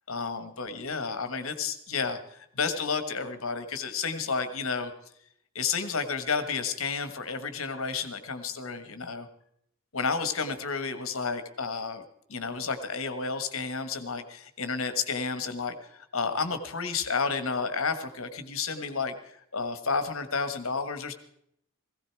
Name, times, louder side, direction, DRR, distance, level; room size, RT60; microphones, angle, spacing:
voice 1, 0.1-4.9 5.5-9.3 9.9-12.0 12.3-21.1, left 5 dB, 70° left, 10 dB, 1.4 m, -31 dB
17.0 x 16.0 x 4.7 m, 0.72 s
head